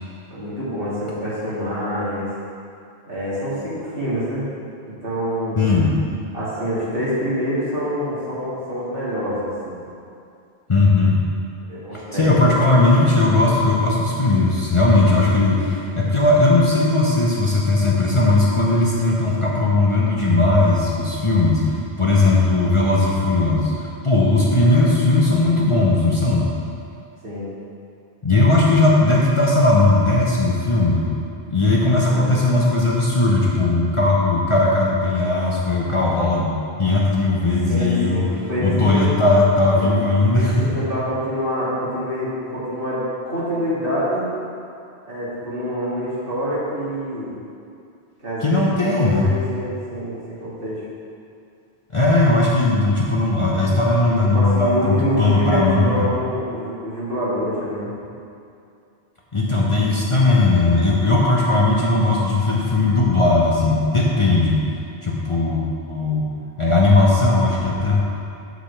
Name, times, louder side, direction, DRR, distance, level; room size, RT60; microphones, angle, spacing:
voice 1, 0.3-2.3 3.1-4.5 4.9-5.7 6.3-9.8 11.7-12.6 15.5-15.6 15.9-16.0 27.2-27.5 32.1-32.4 37.4-39.1 39.7-39.9 40.3-44.3 45.0-47.4 48.2-50.8 54.0-57.9, equal, 60° right, -9 dB, 2.4 m, -26 dB
voice 2, 5.6-6.0 10.7-11.1 11.9-26.5 28.2-31.0 31.5-38.2 38.6-40.7 48.4-49.3 51.9-56.1 59.3-64.6 65.0-66.3 66.6-68.0, left 2 dB, 30° left, -4 dB, 0.8 m, -18 dB
6.1 x 5.1 x 6.7 m, 2.5 s
omnidirectional pair, 1.1 m